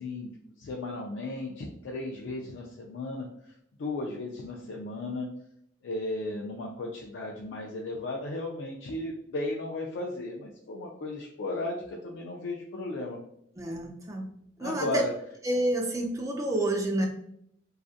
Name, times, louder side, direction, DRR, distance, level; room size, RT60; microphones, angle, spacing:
voice 1, 0.0-3.5 3.8-5.3 5.8-13.2 14.6-15.1, left 2 dB, 80° left, -1 dB, 0.3 m, -35 dB
voice 2, 13.6-14.3 14.6-15.0 15.4-17.1, right 1 dB, 15° right, 1 dB, 0.4 m, -28 dB
2.5 x 2.4 x 2.4 m, 0.72 s
head